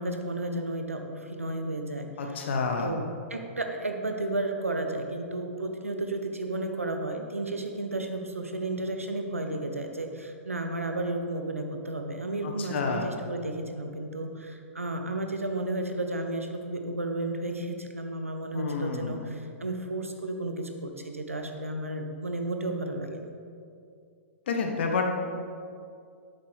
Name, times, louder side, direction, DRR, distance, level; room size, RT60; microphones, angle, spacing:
voice 1, 0.0-23.3, right 2 dB, 85° right, 5 dB, 1.0 m, -33 dB
voice 2, 2.2-2.9 12.4-13.1 18.5-19.3 24.5-25.1, left 4 dB, 55° left, 3 dB, 1.3 m, -29 dB
11.5 x 8.2 x 3.6 m, 2.4 s
figure-of-eight pair, 110°, 7 cm